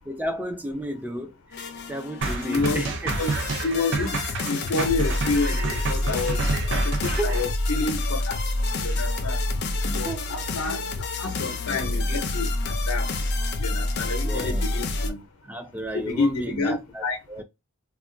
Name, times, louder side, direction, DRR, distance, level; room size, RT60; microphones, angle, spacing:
voice 1, 0.1-3.2 6.1-6.4 7.1-7.4 9.9-10.3 14.2-14.6 15.4-17.4, right 1 dB, 10° right, 0.4 m, -33 dB
sound 1, 1.5-15.1, left 2 dB, 50° left, 0.5 m, -28 dB
sound 2, 2.2-7.4, right 3 dB, 55° right, 0.6 m, -29 dB
voice 2, 2.5-2.8 3.2-3.3 3.6-4.2 4.5-6.4 6.7-8.4 8.8-9.4 9.9-13.1 13.6-15.2 15.9-17.2, left 3 dB, 90° left, 0.6 m, -28 dB
2.3 x 2.1 x 3.7 m
head